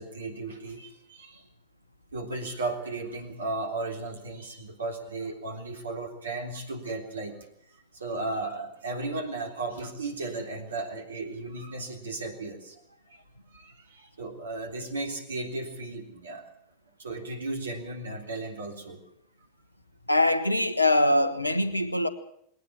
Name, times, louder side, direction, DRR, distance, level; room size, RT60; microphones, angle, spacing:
voice 1, 0.0-1.4 2.1-7.4 7.9-12.8 13.1-13.2 13.5-16.5 17.0-19.0, right 2 dB, 70° right, 3.6 m, -35 dB
voice 2, 20.1-22.1, left 1 dB, 85° left, 1.4 m, -23 dB
20.5 x 18.5 x 7.4 m
figure-of-eight pair, 90°, 0 cm